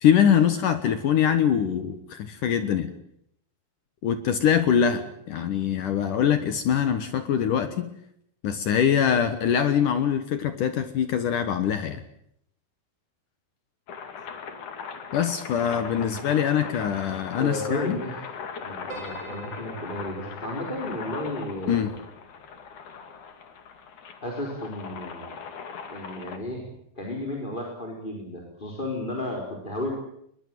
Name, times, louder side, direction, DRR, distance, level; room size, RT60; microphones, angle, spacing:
voice 1, 0.0-2.9 4.0-7.9 8.4-12.0 15.1-18.0 21.7-21.9, left 8 dB, 65° left, 11 dB, 2.1 m, -23 dB
sound 1, 13.9-26.4, left 6 dB, 50° left, 3.3 m, -39 dB
voice 2, 17.4-18.2 18.6-21.9 24.2-25.4 25.9-26.6 27.0-29.9, left 1 dB, 10° left, 0 dB, 3.8 m, -33 dB
Piano, 18.9-23.3, right 4 dB, 30° right, 5.0 m, -48 dB
21.5 x 21.5 x 9.3 m, 0.71 s
omnidirectional pair, 5.5 m